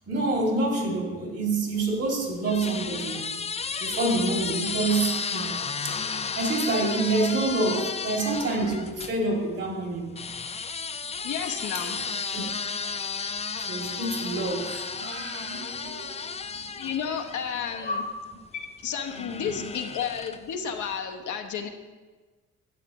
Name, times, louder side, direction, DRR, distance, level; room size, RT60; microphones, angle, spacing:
voice 1, 0.1-3.2 3.8-5.5 6.4-10.2 12.3-12.4 13.7-16.2 17.8-18.0 19.3-19.7, right 2 dB, 55° right, 0 dB, 2.5 m, -27 dB
sound 1, 1.8-9.2 10.2-18.1 18.9-20.6, left 5 dB, 20° left, 0.4 m, -33 dB
voice 2, 11.2-12.0 16.8-18.0 18.5-21.7, left 7 dB, 75° left, 5 dB, 0.9 m, -32 dB
11.5 x 8.0 x 3.0 m, 1.3 s
cardioid pair, 90°, 30 cm